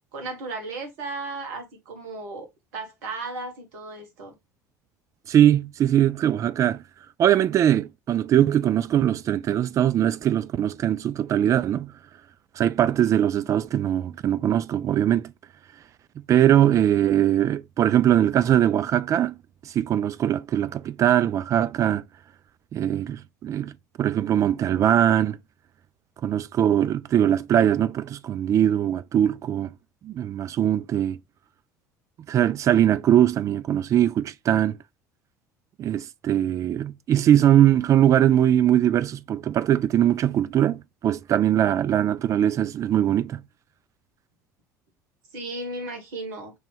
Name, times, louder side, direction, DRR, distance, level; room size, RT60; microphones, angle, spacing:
voice 1, 0.1-2.5 2.7-4.3 45.3-46.5, right 3 dB, 60° right, 1.4 m, -35 dB
voice 2, 5.3-6.8 7.2-11.9 12.6-15.3 16.3-19.3 19.7-22.0 22.7-23.7 24.0-25.4 26.2-29.7 30.0-31.2 32.3-34.8 35.8-43.4, right 11 dB, 35° right, 0.4 m, -21 dB
3.1 x 3.0 x 4.5 m
figure-of-eight pair, 65°, 9 cm